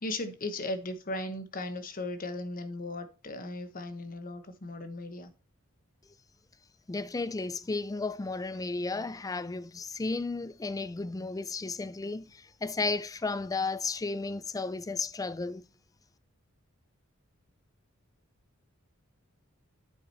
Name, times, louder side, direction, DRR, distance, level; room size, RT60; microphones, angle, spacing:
voice 1, 0.0-5.3, left 2 dB, 40° left, 1.0 m, -37 dB
voice 2, 6.9-15.6, left 3 dB, 15° left, 0.4 m, -33 dB
9.5 x 5.0 x 4.2 m
head